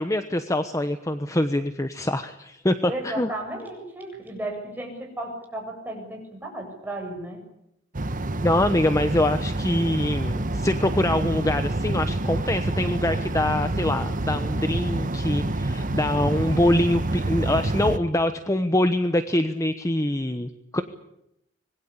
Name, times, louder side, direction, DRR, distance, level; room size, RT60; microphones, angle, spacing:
voice 1, 0.0-3.3 8.4-20.8, left 1 dB, 15° left, 9 dB, 1.0 m, -24 dB
voice 2, 2.9-7.4, right 1 dB, 10° right, 1 dB, 7.8 m, -34 dB
sound 1, 7.9-18.0, right 1 dB, 45° right, 1.2 m, -27 dB
25.5 x 21.5 x 8.6 m, 0.80 s
head